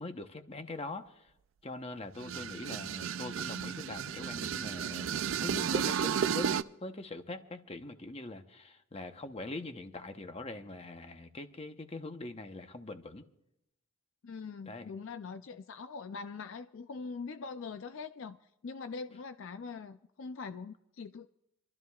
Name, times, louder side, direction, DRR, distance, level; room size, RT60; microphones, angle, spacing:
voice 1, 0.0-1.3 1.6-13.2 14.6-14.9, left 2 dB, 30° left, 0.9 m, -43 dB
sound 1, 2.2-6.6, right 7 dB, 65° right, 0.4 m, -33 dB
voice 2, 14.2-18.4 18.6-21.3, left 4 dB, 65° left, 0.4 m, -42 dB
27.5 x 13.0 x 2.4 m
head